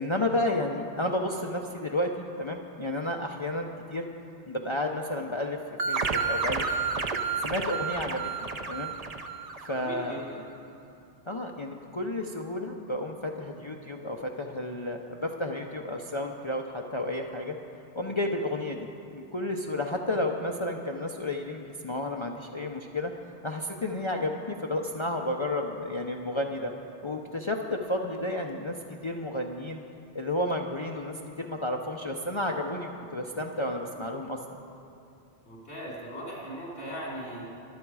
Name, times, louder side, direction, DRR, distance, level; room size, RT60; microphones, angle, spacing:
voice 1, 0.0-4.1 4.5-5.6 5.9-6.6 7.4-8.3 8.7-8.9 9.7-10.2 11.3-17.6 17.9-18.9 19.1-23.1 23.4-26.7 27.0-28.8 29.0-29.8 30.1-34.6, left 1 dB, 30° left, 2 dB, 0.7 m, -31 dB
sound 1, 5.8-10.1, right 5 dB, 40° right, 0.7 m, -31 dB
voice 2, 9.8-10.4 35.5-37.5, equal, 80° left, -5 dB, 3.9 m, -38 dB
24.0 x 9.0 x 4.8 m, 2.6 s
omnidirectional pair, 1.1 m